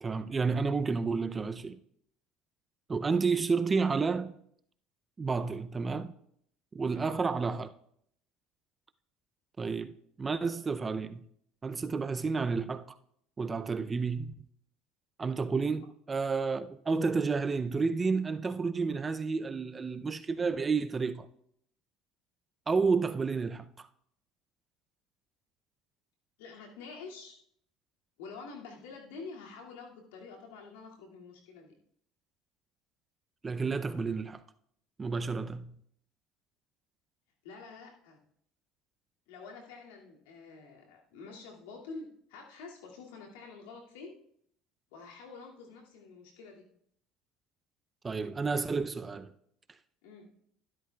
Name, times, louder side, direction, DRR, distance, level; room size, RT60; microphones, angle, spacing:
voice 1, 0.0-1.8 2.9-4.4 5.2-6.1 6.7-7.7 9.6-11.3 11.6-13.0 13.4-14.3 15.2-21.3 22.7-23.9 33.4-34.4 35.0-35.8 48.0-49.3, right 4 dB, 25° right, 0.5 m, -31 dB
voice 2, 26.4-27.4 28.2-31.7 37.4-38.2 39.3-44.2 44.9-46.7 50.0-50.3, left 4 dB, 85° left, 2.3 m, -47 dB
12.5 x 12.0 x 2.3 m
supercardioid pair, 90°, 0 cm